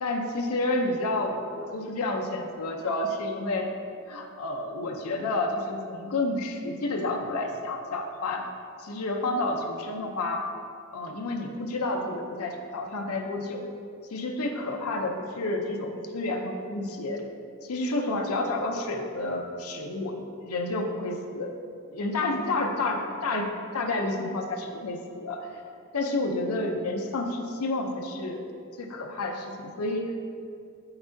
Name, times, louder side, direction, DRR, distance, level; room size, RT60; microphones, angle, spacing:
voice 1, 0.0-3.7 4.1-8.5 8.8-10.4 10.9-13.6 14.1-17.2 17.6-20.2 20.4-21.5 21.9-25.6 25.9-28.4 28.8-30.2, left 2 dB, 85° left, 2 dB, 0.6 m, -30 dB
7.8 x 5.9 x 2.6 m, 2.3 s
head